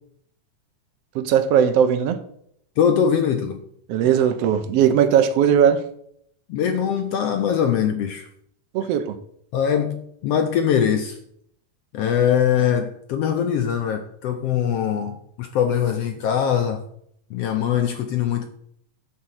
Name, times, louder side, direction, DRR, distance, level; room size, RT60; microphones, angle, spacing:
voice 1, 1.1-2.2 3.9-5.8 8.7-9.1, right 8 dB, 65° right, 1.6 m, -18 dB
voice 2, 2.8-3.6 6.5-8.3 9.5-11.2 11.9-16.8 17.3-18.5, left 8 dB, 75° left, 1.5 m, -22 dB
11.5 x 4.3 x 7.9 m
omnidirectional pair, 3.5 m